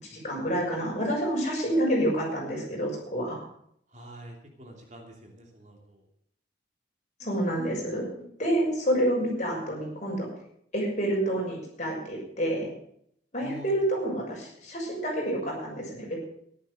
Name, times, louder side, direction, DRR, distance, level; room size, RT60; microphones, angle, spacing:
voice 1, 0.0-3.4 7.2-8.0 8.4-10.3 10.7-12.7 13.3-16.2, right 1 dB, 40° left, -2 dB, 6.4 m, -28 dB
voice 2, 3.9-6.0 13.4-13.8, equal, 40° right, 1 dB, 3.0 m, -47 dB
14.0 x 11.5 x 6.6 m, 0.70 s
head